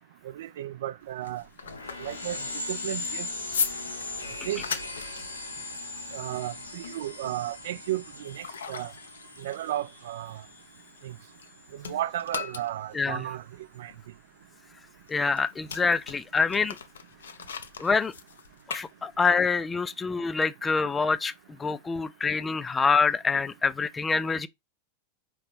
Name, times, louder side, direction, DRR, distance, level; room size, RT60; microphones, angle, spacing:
voice 1, 0.2-1.4 2.0-2.4 2.7-3.3 4.5-4.6 6.1-8.9 9.4-10.4 11.0-11.2 11.7-13.4 13.8-13.9, right 13 dB, 55° right, 0.3 m, -34 dB
sound 1, 1.0-11.5 11.8-19.5, left 6 dB, 65° left, 0.6 m, -39 dB
sound 2, 1.6-11.8, left 2 dB, 80° left, 1.4 m, -39 dB
voice 2, 15.1-16.8 17.8-18.1 18.7-21.3 21.6-24.5, left 5 dB, 15° left, 0.4 m, -26 dB
4.7 x 3.1 x 3.3 m
figure-of-eight pair, 90°, 0 cm